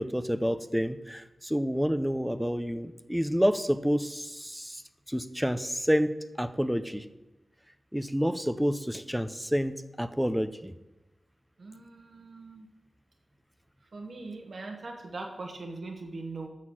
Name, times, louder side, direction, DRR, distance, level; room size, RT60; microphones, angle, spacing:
voice 1, 0.0-4.8 5.1-7.0 7.9-10.7, equal, 5° right, 11 dB, 0.5 m, -29 dB
voice 2, 11.6-12.7 13.8-16.5, right 3 dB, 70° right, 2 dB, 1.2 m, -41 dB
7.5 x 6.3 x 5.9 m, 1.0 s
wide cardioid pair, 75°, 0 cm